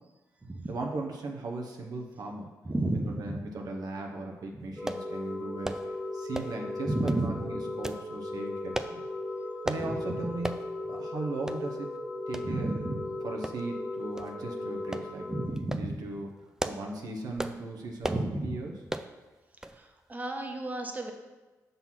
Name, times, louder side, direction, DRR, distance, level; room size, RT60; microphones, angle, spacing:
voice 1, 0.7-2.5 3.0-9.0 9.6-10.5 10.9-11.9 12.3-12.7 13.2-15.3 15.8-16.3 16.6-18.8, right 2 dB, 65° right, 1 dB, 0.9 m, -37 dB
voice 2, 2.6-3.4 6.9-7.3 9.9-10.0 12.4-13.0 15.3-15.8 18.0-18.5 19.7-21.1, right 2 dB, 25° right, 3 dB, 1.1 m, -32 dB
sound 1, 4.8-15.5, left 2 dB, 10° left, 1.0 m, -37 dB
sound 2, 4.9-5.1 5.6-5.9 6.3-6.6 7.1-7.3 7.8-8.0 8.7-9.0 9.7-9.9 10.4-10.6 11.0-11.1 11.5-11.6 12.3-12.5 13.4-13.8 14.2-14.3 14.9-15.1 15.6-15.9 16.4-16.9 17.4-17.6 18.0-18.3 18.9-19.1 19.6-19.8 20.1-20.2, right 1 dB, 10° right, 0.4 m, -35 dB
5.7 x 4.0 x 5.9 m, 1.2 s
supercardioid pair, 55°, 7 cm